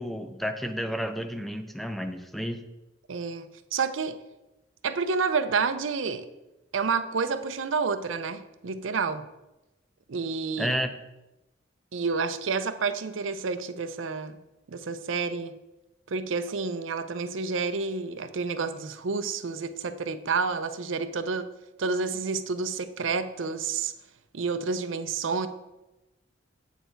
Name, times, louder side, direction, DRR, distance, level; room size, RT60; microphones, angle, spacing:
voice 1, 0.0-2.6 10.6-10.9, equal, ahead, 7 dB, 0.4 m, -31 dB
voice 2, 3.1-3.5 3.7-4.2 4.8-6.2 6.7-9.3 10.1-10.7 11.9-14.4 14.7-15.5 16.1-21.5 21.8-23.9 24.3-25.5, right 4 dB, 90° right, 11 dB, 0.6 m, -29 dB
8.0 x 6.7 x 4.5 m, 0.98 s
head